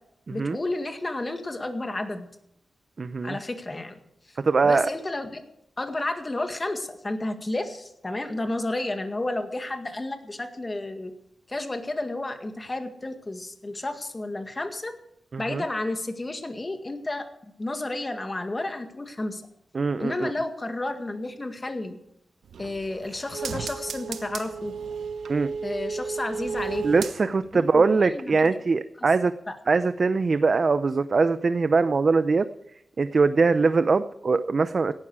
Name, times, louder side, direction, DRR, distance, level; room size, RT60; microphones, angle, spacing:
voice 1, 0.3-2.3 3.2-3.9 4.3-4.4 4.6-5.4 5.8-11.1 11.5-14.9 15.4-17.3 17.6-19.4 20.0-22.0 22.6-24.7 25.6-26.9 27.5-28.6 29.5-29.6, left 2 dB, 25° left, 6 dB, 1.9 m, -31 dB
voice 2, 3.0-3.4 4.4-4.9 15.3-15.6 19.7-20.3 25.3-25.5 26.8-29.3 29.7-32.5 33.0-34.9, right 4 dB, 45° right, 12 dB, 0.6 m, -22 dB
sound 1, 22.4-27.6 27.9-28.0, right 5 dB, 90° right, 1.0 m, -34 dB
17.5 x 12.5 x 4.8 m, 0.78 s
wide cardioid pair, 100°, 0 cm